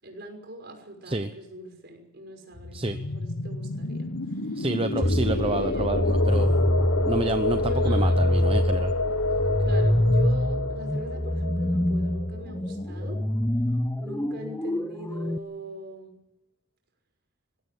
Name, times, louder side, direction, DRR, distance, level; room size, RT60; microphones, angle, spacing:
voice 1, 0.0-5.9 7.6-8.2 9.6-13.3 14.0-16.1, right 1 dB, 50° right, 3 dB, 6.0 m, -41 dB
sound 1, 2.5-13.0, left 2 dB, 80° left, 1.2 m, -29 dB
voice 2, 4.6-6.6 7.0-8.9, right 2 dB, 25° right, 8 dB, 0.8 m, -28 dB
sound 2, 5.0-15.4, left 1 dB, 10° left, 0.7 m, -25 dB
21.0 x 16.5 x 9.6 m, 0.92 s
head